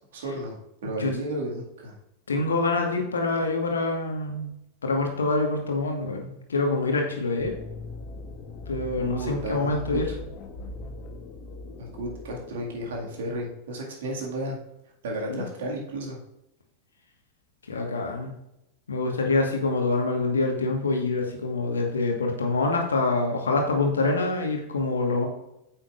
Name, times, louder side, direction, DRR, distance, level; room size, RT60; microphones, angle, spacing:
voice 1, 0.1-1.9 9.0-10.2 11.8-14.6 15.0-16.2, right 1 dB, 60° right, -1 dB, 2.0 m, -33 dB
voice 2, 2.3-4.5 4.8-7.5 8.7-10.1 15.3-15.4 17.7-18.3 18.9-25.3, left 3 dB, 70° left, 2 dB, 1.5 m, -25 dB
sound 1, 7.4-13.5, left 3 dB, 40° left, 1.0 m, -40 dB
8.9 x 7.5 x 2.5 m, 0.85 s
figure-of-eight pair, 90°, 0 cm